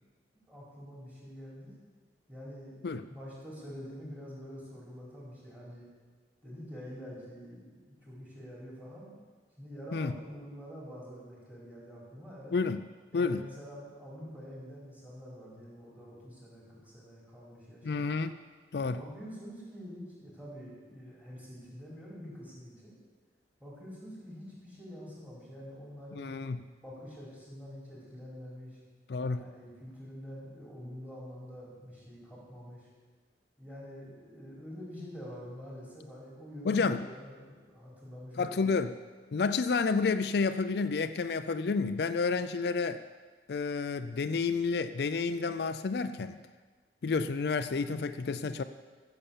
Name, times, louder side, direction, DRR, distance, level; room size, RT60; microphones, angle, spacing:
voice 1, 0.5-1.7 2.3-5.9 6.4-9.1 9.6-12.6 13.1-18.1 18.8-23.0 23.6-26.3 26.8-28.8 29.4-32.9 33.6-38.7, equal, 10° right, -6 dB, 4.4 m, -46 dB
voice 2, 17.8-18.3 18.7-19.0 26.1-26.6 29.1-29.4 36.6-37.0 38.4-39.0 39.3-43.0 43.5-46.4 47.0-48.6, left 4 dB, 65° left, 10 dB, 0.4 m, -30 dB
14.5 x 7.0 x 7.1 m, 1.4 s
head